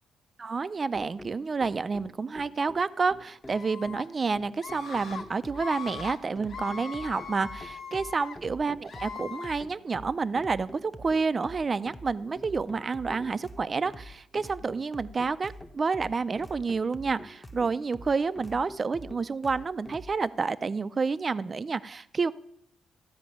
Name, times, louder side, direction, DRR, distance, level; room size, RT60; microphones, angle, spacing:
voice 1, 0.4-22.3, right 4 dB, 35° right, 14 dB, 0.4 m, -29 dB
sound 1, 0.9-20.2, left 1 dB, 10° left, 0.8 m, -46 dB
Screaming, 3.5-4.0 4.6-5.2 5.5-6.2 6.5-8.4 8.8-9.6, left 6 dB, 65° left, 1.4 m, -40 dB
13.5 x 5.1 x 9.1 m, 0.73 s
cardioid pair, 90°, 0 cm